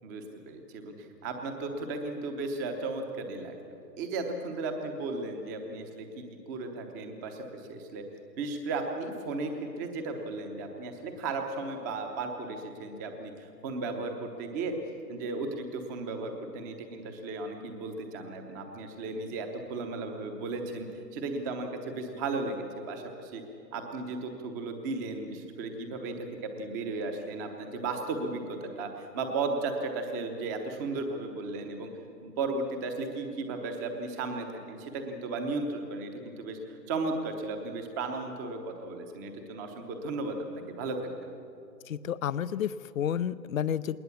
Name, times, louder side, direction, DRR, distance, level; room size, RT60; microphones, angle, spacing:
voice 1, 0.0-8.0 8.4-14.7 15.1-23.4 23.7-31.9 32.2-41.3, right 3 dB, 10° right, 5 dB, 0.9 m, -35 dB
voice 2, 41.9-44.0, left 9 dB, 55° left, 16 dB, 0.6 m, -31 dB
20.0 x 20.0 x 7.2 m, 2.7 s
hypercardioid pair, 150°, 50 cm